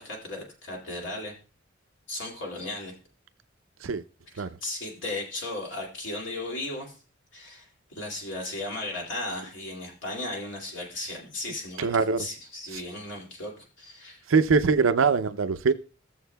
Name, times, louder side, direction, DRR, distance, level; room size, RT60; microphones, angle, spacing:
voice 1, 0.0-1.3 2.1-2.9 4.3-6.9 7.3-7.7 7.9-11.9 12.2-14.2, left 2 dB, 65° left, 2.5 m, -36 dB
voice 2, 11.8-12.3 14.3-15.7, right 5 dB, 90° right, 0.5 m, -22 dB
16.0 x 7.2 x 2.3 m
head